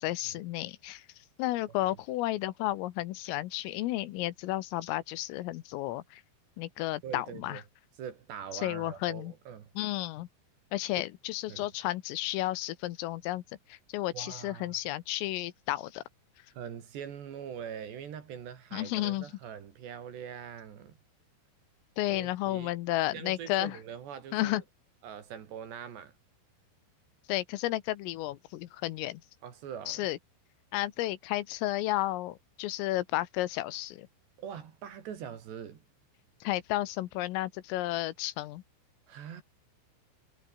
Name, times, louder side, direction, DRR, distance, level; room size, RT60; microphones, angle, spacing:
voice 1, 0.0-6.2 6.6-7.6 8.5-9.3 9.8-10.3 10.7-13.4 13.7-16.0 18.7-19.3 22.0-23.8 24.3-24.6 27.3-29.2 29.9-30.2 30.7-34.1 36.4-38.6, left 16 dB, 80° left, 3.7 m, -32 dB
voice 2, 7.0-7.6 8.0-9.7 11.0-11.1 11.5-11.7 14.1-14.8 16.5-21.0 22.1-22.7 23.1-24.6 25.0-26.1 29.4-30.1 34.4-35.8 39.1-39.4, right 8 dB, 60° right, 4.6 m, -43 dB
omnidirectional pair, 6.0 m